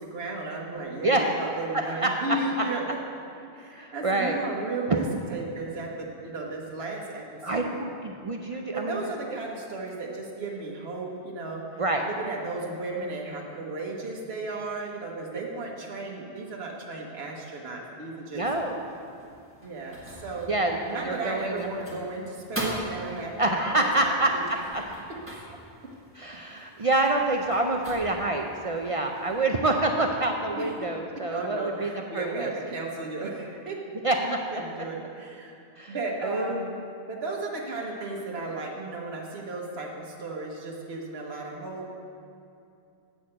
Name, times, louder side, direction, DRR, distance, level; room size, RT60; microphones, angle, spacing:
voice 1, 0.0-2.8 3.5-5.0 5.3-7.2 7.5-7.8 8.5-18.4 19.6-20.5 20.9-24.4 26.8-26.9 30.6-30.7 31.3-33.8 34.2-35.6 35.9-36.7 37.1-41.8, right 3 dB, 80° right, -1 dB, 1.3 m, -35 dB
voice 2, 1.0-1.3 1.7-2.3 2.6-2.7 3.8-4.4 7.4-7.7 8.0-9.1 11.8-12.1 15.3-15.4 18.3-18.8 20.5-21.7 23.4-24.8 26.1-32.5 34.0-34.4 35.8-36.7, right 2 dB, 40° right, 2 dB, 0.5 m, -27 dB
sound 1, 18.3-29.5, right 1 dB, 10° right, 1.5 m, -42 dB
8.3 x 6.3 x 7.5 m, 2.6 s
omnidirectional pair, 1.0 m